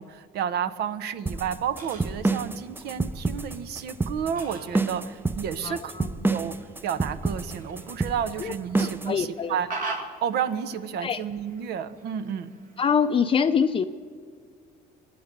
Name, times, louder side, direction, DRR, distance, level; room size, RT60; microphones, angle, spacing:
voice 1, 0.0-5.9 6.3-6.5 6.8-9.7 10.2-12.5, right 8 dB, 75° right, 13 dB, 1.0 m, -31 dB
Fowl, 1.2-13.2, right 3 dB, 55° right, 2.4 m, -43 dB
sound 1, 1.3-9.1, right 3 dB, 10° right, 0.6 m, -28 dB
voice 2, 5.6-6.1 8.4-9.6 11.0-11.2 12.8-13.8, left 6 dB, 30° left, 8 dB, 0.5 m, -25 dB
24.5 x 9.5 x 5.4 m, 2.2 s
cardioid pair, 110°, 17 cm